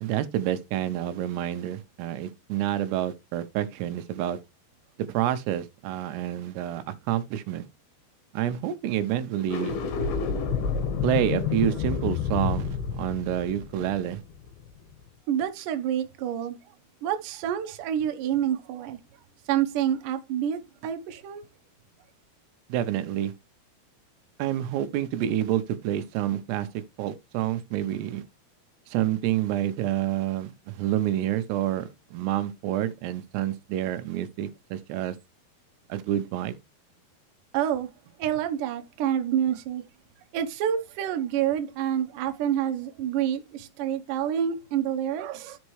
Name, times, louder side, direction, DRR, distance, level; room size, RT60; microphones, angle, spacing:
voice 1, 0.0-4.4 5.0-7.6 8.3-9.8 11.0-14.2 22.7-23.3 24.4-26.7 27.0-28.2 28.9-35.2 35.9-36.6, right 12 dB, 90° right, 2.8 m, -28 dB
sound 1, 9.4-14.7, left 6 dB, 70° left, 3.4 m, -29 dB
voice 2, 15.3-16.6 17.0-19.0 19.5-21.5 37.5-37.9 38.2-39.8 40.3-45.6, right 10 dB, 70° right, 2.2 m, -28 dB
12.5 x 5.3 x 3.1 m
omnidirectional pair, 4.7 m